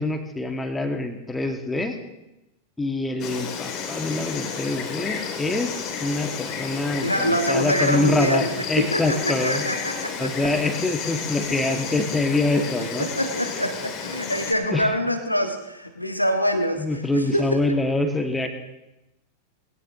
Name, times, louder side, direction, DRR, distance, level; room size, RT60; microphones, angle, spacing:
voice 1, 0.0-2.0 2.8-5.7 6.0-9.6 10.2-13.1 14.7-14.9 16.8-18.5, left 2 dB, 10° left, 5 dB, 1.7 m, -25 dB
Insect, 3.2-14.5, left 6 dB, 35° left, 2.2 m, -32 dB
voice 2, 7.0-10.3 11.7-11.8 12.6-12.7 13.0-17.5, equal, 90° left, 5 dB, 1.5 m, -25 dB
20.5 x 17.0 x 2.8 m, 0.94 s
figure-of-eight pair, 90°, 0 cm